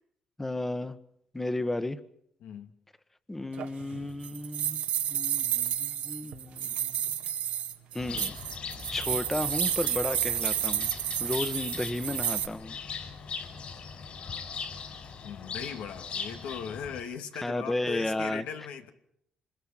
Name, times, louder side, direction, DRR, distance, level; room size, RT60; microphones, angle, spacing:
voice 1, 0.4-1.0 1.3-2.0 3.3-7.0 7.9-8.4 8.9-10.9 11.2-12.8 17.4-18.4, left 2 dB, 10° left, 13 dB, 1.4 m, -33 dB
voice 2, 2.4-2.7 15.2-18.9, left 7 dB, 90° left, 5 dB, 2.5 m, -38 dB
sound 1, 3.6-12.5, right 11 dB, 85° right, 1.7 m, -31 dB
Bird, 8.0-17.0, left 5 dB, 50° left, 5.7 m, -39 dB
26.5 x 21.0 x 5.9 m, 0.72 s
cardioid pair, 105°, 2 cm